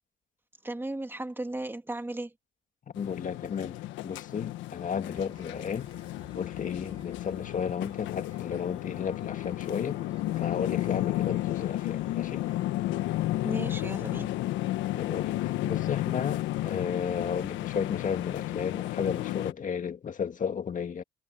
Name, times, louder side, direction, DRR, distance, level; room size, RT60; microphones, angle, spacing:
voice 1, 0.6-2.3 13.4-14.4, right 2 dB, 10° right, 2.8 m, -35 dB
sound 1, 2.9-19.5, left 15 dB, 85° left, 1.4 m, -32 dB
voice 2, 3.0-5.9 6.3-10.0 10.4-12.4 14.9-21.0, left 7 dB, 45° left, 2.0 m, -33 dB
sound 2, 5.1-12.7, right 5 dB, 35° right, 6.2 m, -57 dB
supercardioid pair, 80°, 19 cm